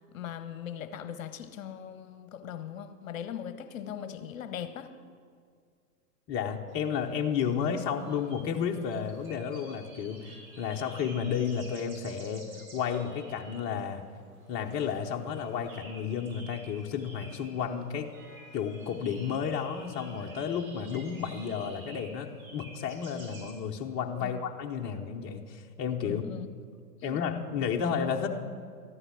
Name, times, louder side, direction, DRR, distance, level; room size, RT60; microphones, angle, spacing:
voice 1, 0.1-5.0 24.2-24.4 26.0-26.5 27.0-27.2, left 9 dB, 55° left, 11 dB, 1.0 m, -40 dB
voice 2, 6.3-14.0 14.5-18.1 18.5-26.2 27.0-28.3, left 7 dB, 25° left, 1 dB, 0.9 m, -32 dB
sound 1, 6.7-23.5, right 2 dB, 60° right, 4.1 m, -52 dB
13.5 x 11.5 x 6.0 m, 2.2 s
hypercardioid pair, 120°, 48 cm